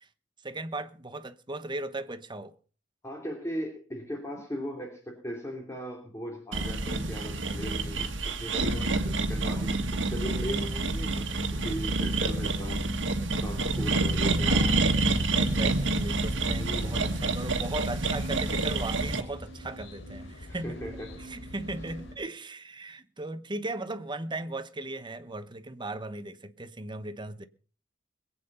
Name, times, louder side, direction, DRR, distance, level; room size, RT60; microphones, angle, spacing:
voice 1, 0.4-2.5 14.4-14.8 15.3-20.8 21.3-27.4, right 2 dB, 25° right, 1.0 m, -37 dB
voice 2, 3.0-12.8 13.4-14.7 16.6-17.0 20.5-21.1, equal, 15° left, 3.1 m, -38 dB
sound 1, 6.5-19.2, right 2 dB, 75° right, 1.7 m, -28 dB
sound 2, 15.7-22.2, left 1 dB, 80° left, 3.5 m, -43 dB
22.0 x 8.9 x 5.5 m
head